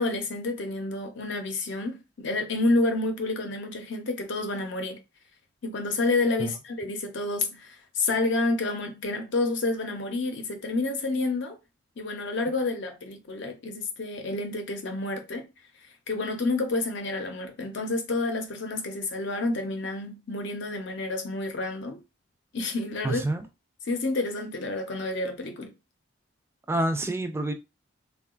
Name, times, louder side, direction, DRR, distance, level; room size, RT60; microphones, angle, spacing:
voice 1, 0.0-5.0 5.6-11.6 12.0-15.4 16.1-22.0 22.5-23.2 23.8-25.7, left 2 dB, 60° left, 0.6 m, -29 dB
voice 2, 23.0-23.4 26.7-27.5, right 1 dB, 10° right, 0.3 m, -27 dB
3.7 x 2.2 x 2.4 m
head